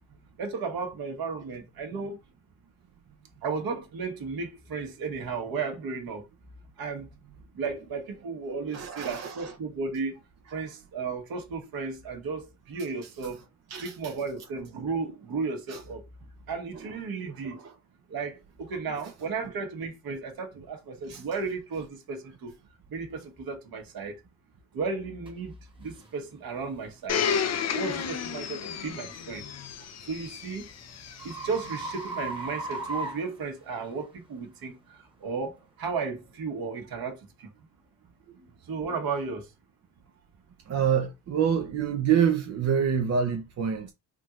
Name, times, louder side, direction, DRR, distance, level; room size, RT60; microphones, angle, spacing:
voice 1, 0.4-2.2 3.4-6.2 6.8-7.1 7.5-10.2 10.5-13.5 13.8-16.0 16.5-17.6 18.1-22.5 22.9-24.2 24.7-25.5 25.8-27.3 27.7-29.5 30.1-30.7 31.2-37.5 38.7-39.5, right 4 dB, 60° right, 1.3 m, -34 dB
voice 2, 8.7-9.5 10.5-10.6 13.7-14.1 15.7-15.8 16.8-16.9 17.3-17.7 19.4-19.5 21.1-21.2 38.4-38.5 40.7-43.9, right 7 dB, 40° right, 0.7 m, -27 dB
sound 1, 25.3-25.4 25.9-26.1 26.7-26.9 29.6-34.1, right 2 dB, 10° right, 1.2 m, -38 dB
Domestic sounds home sounds, 27.1-31.9 32.7-32.8, left 7 dB, 40° left, 0.6 m, -32 dB
3.6 x 2.7 x 2.4 m
supercardioid pair, 65°, 41 cm